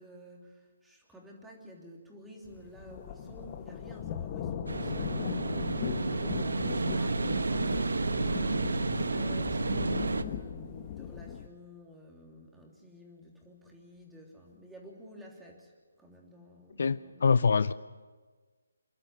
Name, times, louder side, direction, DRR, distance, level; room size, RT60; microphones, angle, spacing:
voice 1, 0.0-17.5, equal, 5° right, -1 dB, 3.3 m, -51 dB
sound 1, 2.5-11.5, left 9 dB, 30° left, 1.3 m, -38 dB
sound 2, 4.7-10.2, right 3 dB, 75° right, 1.1 m, -31 dB
voice 2, 16.8-17.7, left 5 dB, 60° left, 16 dB, 0.5 m, -25 dB
28.0 x 12.0 x 9.2 m, 1.4 s
figure-of-eight pair, 155°, 0 cm